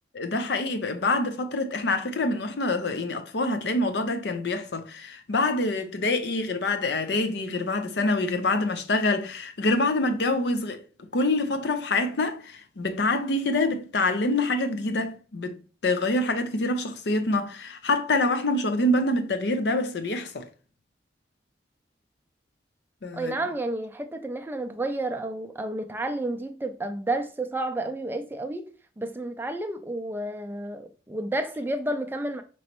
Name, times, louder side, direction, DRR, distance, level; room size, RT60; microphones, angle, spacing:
voice 1, 0.1-10.8 11.1-15.6 15.8-20.5 23.0-23.3, left 2 dB, 65° left, 0.6 m, -26 dB
voice 2, 23.1-28.7 29.0-32.4, right 2 dB, 10° right, 0.4 m, -31 dB
5.1 x 3.1 x 3.0 m
head